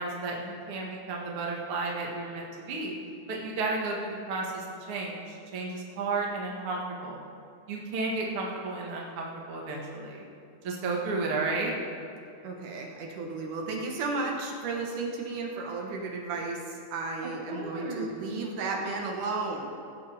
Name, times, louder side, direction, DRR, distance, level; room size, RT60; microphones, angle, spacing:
voice 1, 0.0-2.9 3.3-7.2 7.7-10.2 10.6-11.7 17.5-18.1, right 3 dB, 50° right, -1 dB, 2.2 m, -33 dB
voice 2, 12.4-19.7, right 3 dB, 75° right, 0 dB, 2.6 m, -33 dB
17.5 x 7.5 x 4.9 m, 2.6 s
omnidirectional pair, 3.7 m